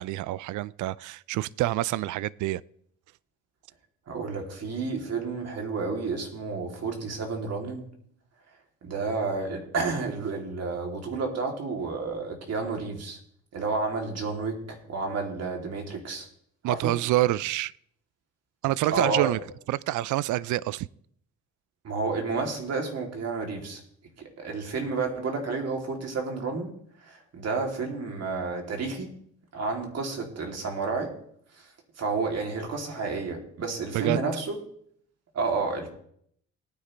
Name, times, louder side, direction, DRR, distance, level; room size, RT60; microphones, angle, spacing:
voice 1, 0.0-2.6 16.6-17.7 18.6-19.4 19.7-20.9 33.9-34.2, right 16 dB, 75° right, 0.4 m, -27 dB
voice 2, 4.1-7.9 8.8-13.2 13.5-16.3 16.6-17.0 18.9-19.3 21.8-23.8 24.2-29.2 29.5-31.2 31.5-34.6 35.3-35.9, right 4 dB, 55° right, 3.0 m, -31 dB
18.0 x 9.8 x 3.3 m
cardioid pair, 90°, 30 cm